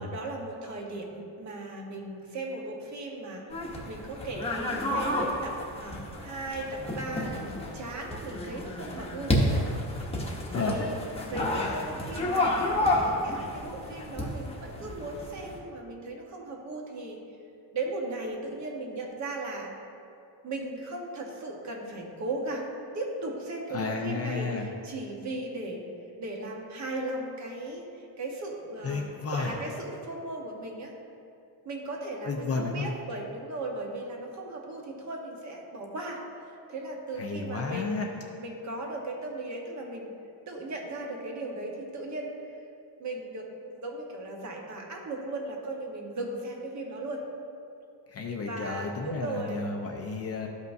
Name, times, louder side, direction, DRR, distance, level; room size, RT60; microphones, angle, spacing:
voice 1, 0.0-3.6 3.9-9.7 10.1-11.0 11.3-17.2 17.7-19.7 20.4-25.8 26.2-29.1 29.3-30.9 31.6-38.0 38.4-40.1 40.5-42.4 43.0-47.3 48.4-49.6, right 2 dB, 40° right, 0 dB, 1.1 m, -37 dB
sound 1, 3.5-15.6, left 1 dB, 15° left, 0.9 m, -31 dB
voice 2, 23.7-24.7 28.8-29.6 32.3-32.9 37.2-38.1 48.1-50.5, left 4 dB, 35° left, 1 dB, 0.5 m, -32 dB
13.5 x 5.4 x 2.6 m, 2.6 s
cardioid pair, 175°, 45 cm